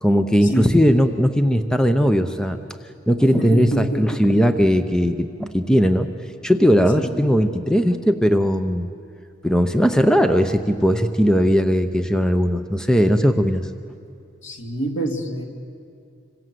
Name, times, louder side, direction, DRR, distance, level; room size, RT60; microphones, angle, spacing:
voice 1, 0.0-2.6 3.1-6.1 6.4-8.9 9.4-13.7, equal, 5° left, 7 dB, 0.7 m, -18 dB
voice 2, 3.4-4.2 7.0-7.2 14.4-15.4, right 1 dB, 75° left, 2 dB, 2.8 m, -26 dB
26.5 x 25.0 x 7.7 m, 2.5 s
head